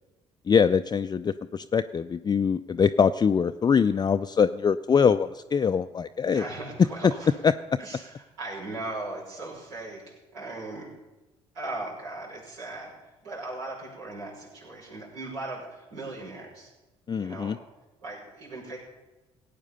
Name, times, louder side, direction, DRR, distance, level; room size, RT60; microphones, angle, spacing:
voice 1, 0.5-6.4 7.0-7.1 7.4-7.5 17.1-17.6, left 6 dB, 25° left, 9 dB, 0.4 m, -23 dB
voice 2, 6.3-7.4 7.8-10.0 10.3-10.9 11.5-16.7 17.2-17.5 18.0-18.8, right 2 dB, 80° right, -6 dB, 5.7 m, -38 dB
17.0 x 8.8 x 5.5 m, 1.1 s
hypercardioid pair, 55°, 15 cm